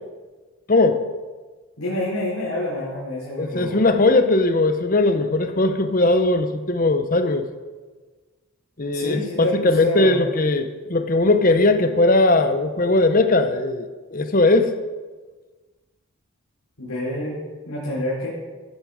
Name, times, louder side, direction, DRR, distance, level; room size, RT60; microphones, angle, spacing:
voice 1, 0.7-1.0 3.4-7.5 8.8-14.7, left 2 dB, 40° left, 9 dB, 0.8 m, -19 dB
voice 2, 1.8-3.8 8.9-10.2 16.8-17.4 17.6-18.3, left 1 dB, 85° left, -8 dB, 4.2 m, -27 dB
15.0 x 9.7 x 5.0 m, 1.3 s
head